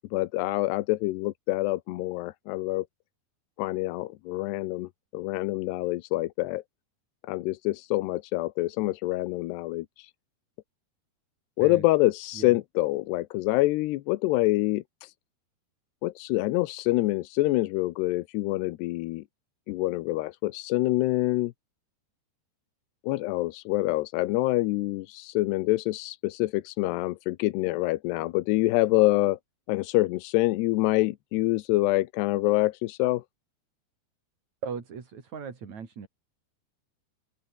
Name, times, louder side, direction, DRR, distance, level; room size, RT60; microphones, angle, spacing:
voice 1, 0.1-2.9 3.6-6.6 7.3-10.1 11.6-15.1 16.0-19.2 19.7-21.5 23.0-29.4 29.7-33.2, left 18 dB, 90° left, 2.9 m, -26 dB
voice 2, 34.6-36.1, right 6 dB, 45° right, 4.4 m, -38 dB
open air
omnidirectional pair, 4.7 m